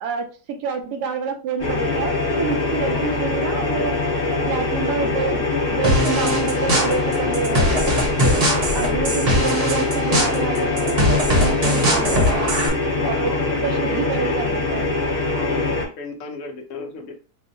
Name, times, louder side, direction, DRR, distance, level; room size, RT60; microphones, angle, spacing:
voice 1, 0.0-3.9 4.5-7.8 8.2-12.5 13.0-13.4 13.6-15.0, right 5 dB, 75° right, 4 dB, 1.2 m, -28 dB
sound 1, 1.6-15.8, left 2 dB, 35° left, 1.1 m, -23 dB
Dog, 1.9-4.7 5.1-8.2 8.6-12.2, left 9 dB, 85° left, 1.3 m, -34 dB
sound 2, 5.8-12.7, equal, 40° right, 0.5 m, -21 dB
voice 2, 13.1-14.5 15.2-17.1, left 3 dB, 60° left, 2 dB, 1.1 m, -35 dB
5.4 x 2.1 x 2.6 m, 0.35 s
omnidirectional pair, 1.8 m